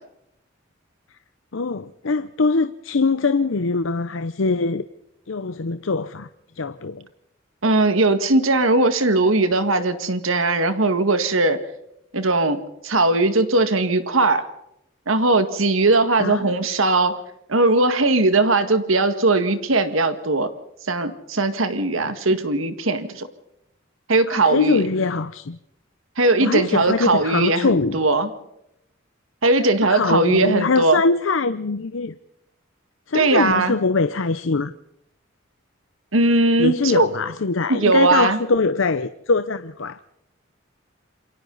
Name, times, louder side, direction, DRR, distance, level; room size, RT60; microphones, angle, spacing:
voice 1, 1.5-4.8 5.3-6.3 6.6-7.1 16.2-16.5 24.3-25.6 26.4-28.0 29.9-32.1 33.1-34.7 36.6-40.1, left 3 dB, 75° left, 0.7 m, -22 dB
voice 2, 7.6-11.6 12.1-14.4 15.1-17.2 17.5-20.5 20.8-23.3 24.1-24.8 26.2-28.3 29.4-31.0 33.1-33.8 36.1-37.1 37.7-38.4, right 2 dB, 85° right, 1.9 m, -19 dB
28.0 x 24.0 x 4.1 m
head